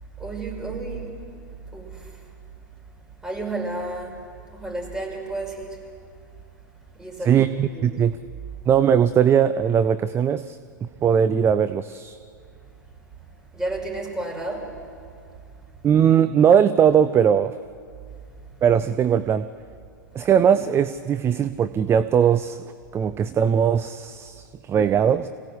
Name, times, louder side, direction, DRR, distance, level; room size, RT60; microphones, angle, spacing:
voice 1, 0.2-1.2 1.7-2.0 3.2-4.2 4.5-5.8 6.9-7.4 7.7-8.0 13.5-14.7, right 2 dB, 5° right, -1 dB, 5.9 m, -31 dB
voice 2, 7.2-8.1 8.7-12.2 15.8-17.5 18.6-19.5 20.1-25.3, right 8 dB, 25° right, 13 dB, 0.6 m, -20 dB
25.5 x 17.5 x 8.5 m, 2.2 s
figure-of-eight pair, 95°, 11 cm